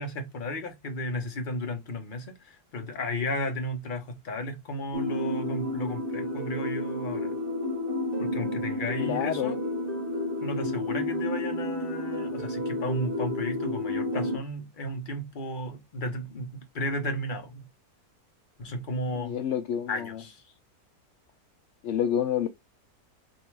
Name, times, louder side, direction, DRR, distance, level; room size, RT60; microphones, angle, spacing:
voice 1, 0.0-7.3 8.2-9.6 10.4-17.7 18.6-19.4 19.9-20.4, left 1 dB, 35° left, 1.0 m, -34 dB
sound 1, 4.9-14.4, left 1 dB, 45° right, 0.9 m, -31 dB
voice 2, 9.0-9.6 19.1-20.2 21.8-22.5, left 9 dB, 65° left, 0.7 m, -28 dB
3.7 x 2.7 x 4.5 m
omnidirectional pair, 1.6 m